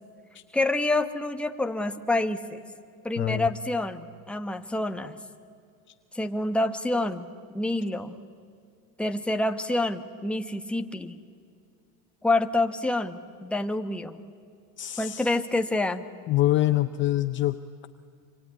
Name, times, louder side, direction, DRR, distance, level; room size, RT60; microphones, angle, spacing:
voice 1, 0.5-2.6 3.0-5.1 6.1-7.3 7.5-8.1 9.0-11.1 12.2-14.2 15.0-16.1, left 2 dB, 5° left, 6 dB, 1.1 m, -27 dB
voice 2, 3.2-3.5 14.8-15.3 16.3-17.9, left 14 dB, 30° left, 10 dB, 0.6 m, -25 dB
26.0 x 24.0 x 9.6 m, 2.4 s
supercardioid pair, 130°, 41 cm